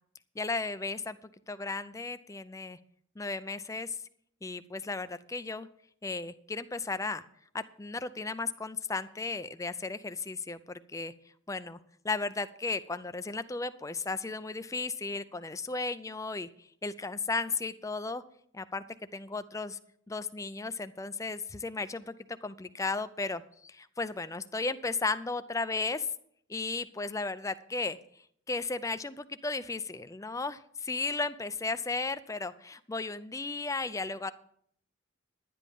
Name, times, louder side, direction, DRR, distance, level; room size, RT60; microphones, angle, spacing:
voice 1, 0.4-1.2 1.5-2.8 3.2-4.0 4.4-5.7 6.0-7.2 7.5-11.1 11.5-11.8 12.0-18.2 18.5-18.8 19.1-19.8 20.1-22.1 22.4-26.1 26.5-28.0 28.5-34.3, left 3 dB, 15° left, 12 dB, 0.5 m, -35 dB
11.0 x 10.5 x 5.3 m, 0.65 s
head